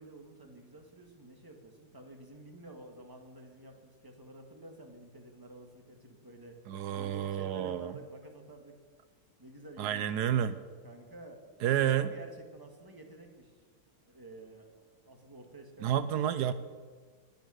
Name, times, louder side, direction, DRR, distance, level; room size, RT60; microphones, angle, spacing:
voice 1, 0.0-8.7 9.4-10.2 10.8-13.6 14.0-16.5, right 2 dB, 15° right, 3 dB, 1.6 m, -51 dB
voice 2, 6.7-7.9 9.8-10.6 11.6-12.1 15.8-16.5, right 10 dB, 80° right, 13 dB, 1.2 m, -30 dB
19.5 x 8.4 x 6.3 m, 1.6 s
omnidirectional pair, 1.7 m